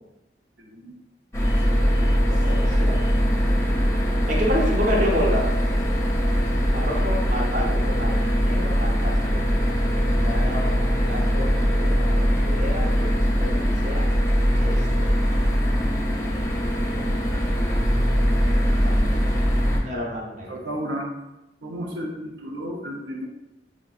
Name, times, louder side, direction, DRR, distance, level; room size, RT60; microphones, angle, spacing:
sound 1, 1.3-19.8, equal, 15° left, 0.6 m, -21 dB
voice 1, 2.4-3.0 4.3-5.5 6.7-8.1 8.4-9.5 10.2-13.1 13.4-14.0 14.6-15.1 18.8-19.0 19.8-20.6, equal, 40° right, -2 dB, 0.8 m, -29 dB
voice 2, 17.1-17.7 20.5-21.1 21.6-23.3, equal, 80° right, -1 dB, 0.6 m, -33 dB
6.0 x 2.5 x 2.4 m, 0.95 s
head